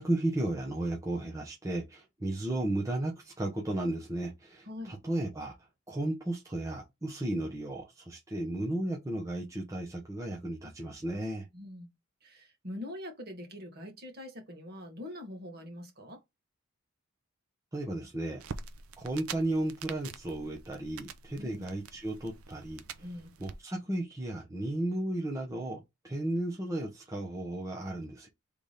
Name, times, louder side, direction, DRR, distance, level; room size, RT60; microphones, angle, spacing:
voice 1, 0.0-5.5 5.9-11.5 17.7-18.4 19.0-22.8 23.4-28.3, right 1 dB, 15° right, 0.9 m, -34 dB
voice 2, 11.5-11.9 12.2-16.2 21.4-21.6 23.0-23.3, left 1 dB, 45° right, 1.6 m, -43 dB
sound 1, 18.4-23.5, right 5 dB, 80° right, 0.6 m, -45 dB
3.5 x 3.3 x 4.0 m
head